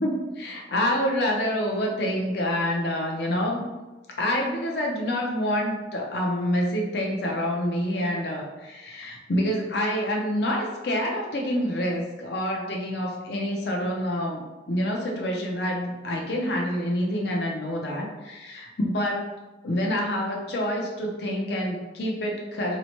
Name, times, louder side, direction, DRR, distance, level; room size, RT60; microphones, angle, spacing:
voice 1, 0.0-3.7 4.2-14.4 14.7-19.3 19.6-22.8, equal, 60° left, -1 dB, 0.5 m, -27 dB
2.7 x 2.1 x 2.9 m, 1.1 s
head